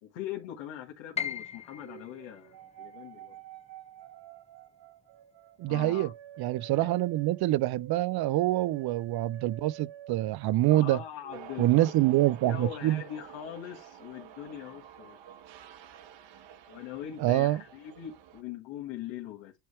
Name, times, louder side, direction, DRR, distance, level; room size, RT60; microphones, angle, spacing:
voice 1, 0.0-3.4 5.7-6.1 6.8-6.9 10.7-12.0 12.2-15.2 16.7-19.5, left 11 dB, 85° left, 1.7 m, -41 dB
Piano, 1.2-7.1 7.4-8.6 9.0-9.1 9.8-10.1, left 7 dB, 15° left, 0.4 m, -42 dB
sound 1, 1.7-10.9 11.2-11.4, right 11 dB, 90° right, 2.4 m, -50 dB
voice 2, 5.6-6.1 6.4-11.0 11.6-13.0 17.2-17.6, right 16 dB, 55° right, 0.5 m, -26 dB
sound 2, 11.3-18.4, right 9 dB, 75° right, 1.3 m, -49 dB
9.0 x 3.4 x 4.3 m
cardioid pair, 105°, 45 cm